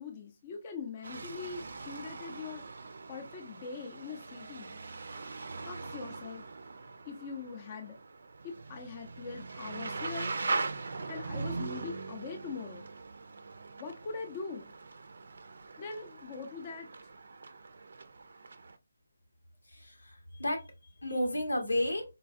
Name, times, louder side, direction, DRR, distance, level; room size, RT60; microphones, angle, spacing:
voice 1, 0.0-2.7 3.1-4.8 5.6-6.4 7.1-8.0 8.4-10.3 11.1-12.9 13.8-14.7 15.8-16.9, left 5 dB, 30° left, 0.5 m, -42 dB
sound 1, 1.0-18.8, right 3 dB, 60° right, 0.4 m, -41 dB
voice 2, 19.7-22.0, left 1 dB, 85° left, 1.2 m, -33 dB
4.0 x 2.3 x 2.6 m
figure-of-eight pair, 155°, 0 cm